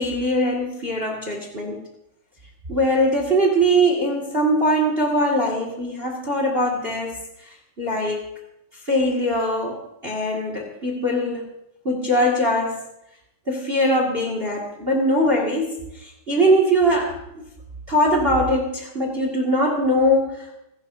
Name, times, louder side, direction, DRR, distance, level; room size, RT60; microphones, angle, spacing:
voice 1, 0.0-1.8 2.7-7.1 7.8-8.2 8.9-11.5 11.8-12.8 13.5-17.4 17.9-20.5, equal, 30° right, 0 dB, 1.0 m, -21 dB
27.5 x 11.0 x 2.7 m, 0.83 s
omnidirectional pair, 4.8 m